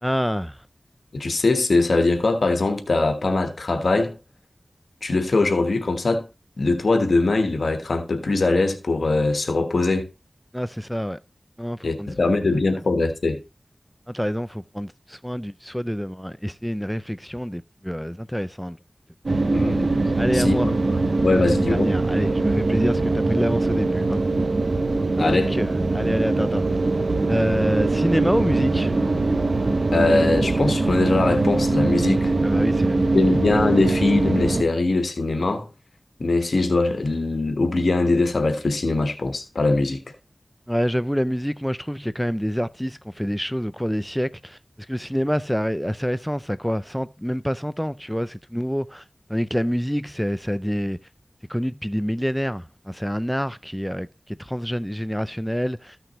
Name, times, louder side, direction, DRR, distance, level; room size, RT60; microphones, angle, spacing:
voice 1, 0.0-0.7 10.5-11.2 11.6-12.1 14.1-18.8 20.2-20.7 21.7-24.2 25.2-26.8 27.3-28.9 32.4-33.3 40.7-49.0 49.3-51.0 51.5-56.0, equal, ahead, 0.3 m, -27 dB
voice 2, 1.1-4.2 5.0-6.2 6.6-10.1 11.8-13.4 19.5-19.9 20.3-20.8 21.2-21.9 25.2-25.5 29.9-32.3 33.1-35.7 36.2-40.0, left 3 dB, 90° left, 1.2 m, -21 dB
sound 1, 19.3-34.6, right 3 dB, 70° right, 1.0 m, -22 dB
14.0 x 6.0 x 3.0 m
wide cardioid pair, 45°, 0 cm